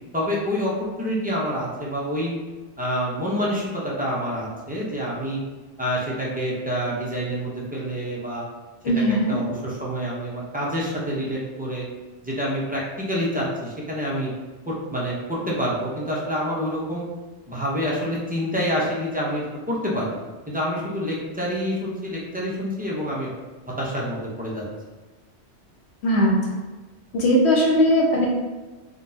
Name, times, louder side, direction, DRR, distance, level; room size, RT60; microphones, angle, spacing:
voice 1, 0.1-2.3 2.8-5.4 5.8-8.4 9.1-11.9 12.2-14.3 14.7-17.0 17.5-20.2 20.5-23.3 23.8-24.6, equal, 15° right, -5 dB, 0.4 m, -27 dB
voice 2, 8.8-9.4 26.0-26.3 27.1-28.3, equal, 75° left, -3 dB, 1.0 m, -19 dB
3.8 x 2.2 x 2.6 m, 1.2 s
omnidirectional pair, 1.2 m